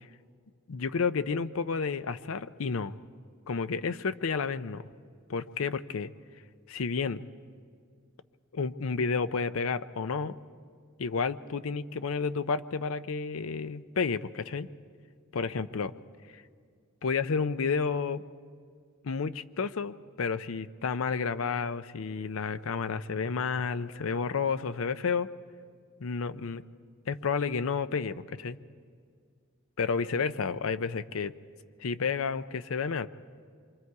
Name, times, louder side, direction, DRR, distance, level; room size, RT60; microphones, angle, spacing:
voice 1, 0.7-2.9 3.5-4.8 5.3-6.1 6.7-7.3 8.5-10.4 11.0-14.7 15.3-15.9 16.3-16.4 17.0-18.2 19.0-25.3 26.0-26.6 27.1-28.6 29.8-31.3 31.8-33.1, left 5 dB, 70° left, 13 dB, 0.6 m, -31 dB
26.5 x 24.0 x 4.7 m, 2.1 s
head